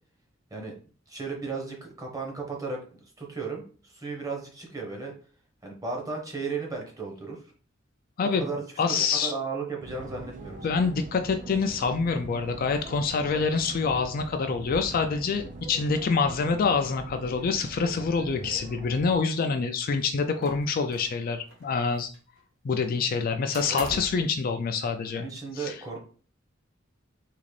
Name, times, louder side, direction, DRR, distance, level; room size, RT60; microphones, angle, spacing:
voice 1, 1.1-5.1 5.6-7.4 8.2-10.9 23.7-23.8 25.1-26.0, right 4 dB, 20° right, 0 dB, 0.9 m, -35 dB
voice 2, 8.8-9.3 10.6-22.1 22.6-25.3 25.6-25.7, left 5 dB, 50° left, 6 dB, 0.4 m, -26 dB
sound 1, 9.8-19.1, right 2 dB, 40° right, 0.5 m, -42 dB
sound 2, 20.4-21.2 21.5-22.4 23.5-24.3, right 2 dB, 75° right, 1.0 m, -42 dB
3.8 x 2.5 x 3.2 m, 0.41 s
head